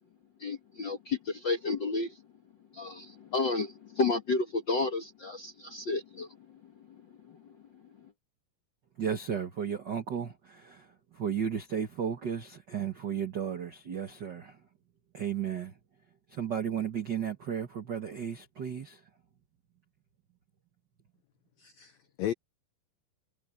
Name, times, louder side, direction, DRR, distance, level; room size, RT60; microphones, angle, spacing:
voice 1, 0.4-2.2 2.7-6.3, left 3 dB, 65° left, 1.1 m, -31 dB
voice 2, 9.0-14.6 15.1-15.7 16.3-19.0, right 8 dB, 75° right, 1.0 m, -34 dB
voice 3, 21.6-22.3, left 11 dB, 85° left, 1.5 m, -35 dB
omnidirectional pair, 4.2 m